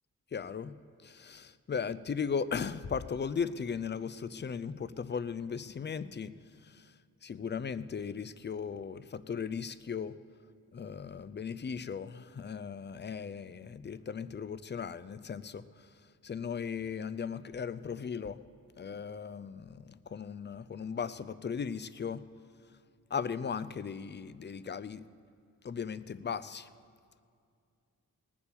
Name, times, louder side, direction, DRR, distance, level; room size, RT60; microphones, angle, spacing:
voice 1, 0.3-0.8 1.0-6.4 6.7-6.8 7.2-10.2 10.7-15.6 16.2-18.4 18.8-22.2 23.1-25.0 25.6-26.7, left 6 dB, 30° left, 15 dB, 0.4 m, -37 dB
18.5 x 7.2 x 6.8 m, 2.3 s
cardioid pair, 85°, 37 cm